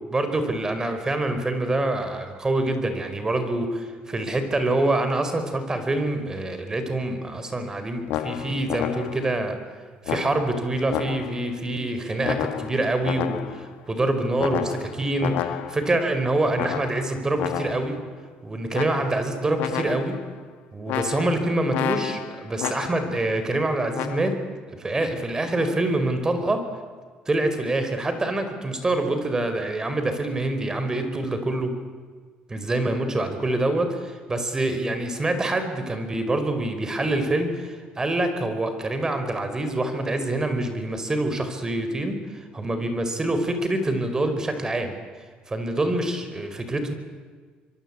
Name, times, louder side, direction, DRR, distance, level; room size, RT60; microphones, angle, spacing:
voice 1, 0.1-9.6 10.0-18.0 18.4-20.2 20.7-24.4 24.7-26.6 27.3-31.8 32.5-44.9 45.5-46.9, right 2 dB, 20° right, 8 dB, 4.6 m, -26 dB
sound 1, 8.1-9.4 10.1-11.5 12.2-13.7 14.4-16.0 16.5-18.0 18.7-19.3 19.6-20.3 20.9-23.2 23.9-24.3, left 11 dB, 80° left, 1.7 m, -31 dB
25.0 x 23.0 x 8.7 m, 1.5 s
cardioid pair, 100°, 3 cm